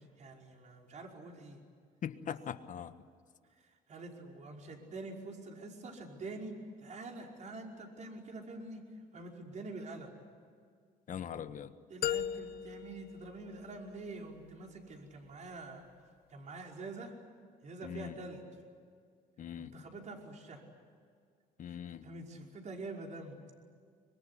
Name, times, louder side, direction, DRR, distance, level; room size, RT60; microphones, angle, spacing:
voice 1, 0.0-1.6 3.9-8.8 9.1-10.1 11.9-15.8 16.3-17.1 17.6-18.4 19.6-20.6 21.7-21.8 22.0-23.4, right 2 dB, 45° right, 1 dB, 5.3 m, -46 dB
voice 2, 2.0-2.9 11.1-11.7 17.8-18.2 19.4-19.7 21.6-22.0, left 9 dB, 50° left, 11 dB, 1.5 m, -41 dB
sound 1, 12.0-14.1, left 10 dB, 65° left, 0.8 m, -38 dB
25.5 x 23.0 x 10.0 m, 2.1 s
cardioid pair, 110°, 17 cm